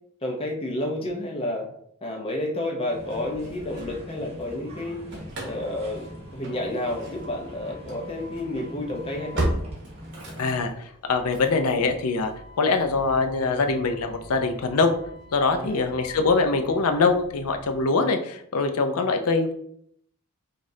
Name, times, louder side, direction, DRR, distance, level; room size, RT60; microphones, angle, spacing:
voice 1, 0.2-1.7 2.0-5.0 5.4-6.1 6.3-9.5 15.5-15.8, left 1 dB, 25° left, 1 dB, 0.7 m, -30 dB
sound 1, 2.9-10.7, equal, 25° right, 0.9 m, -42 dB
Engine starting / Slam, 3.1-4.5 4.8-17.8, right 1 dB, 55° right, 1.1 m, -38 dB
voice 2, 10.4-10.7 11.1-12.3 12.6-14.9 15.3-19.5, left 3 dB, 75° left, 6 dB, 0.5 m, -23 dB
5.0 x 2.5 x 2.7 m, 0.68 s
head